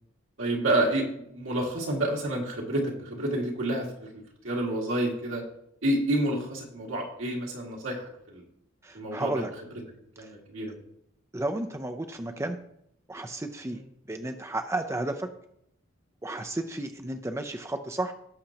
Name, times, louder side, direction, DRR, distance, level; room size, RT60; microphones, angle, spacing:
voice 1, 0.4-5.4 5.8-8.4 8.9-9.4 10.2-10.7 12.3-12.4 13.7-13.8, right 1 dB, 75° right, -1 dB, 2.3 m, -29 dB
voice 2, 8.8-9.5 10.2-10.3 11.3-12.6 13.1-13.8 14.1-15.3 16.2-18.1, right 2 dB, 15° right, 6 dB, 0.5 m, -32 dB
17.5 x 6.4 x 2.9 m, 0.75 s
head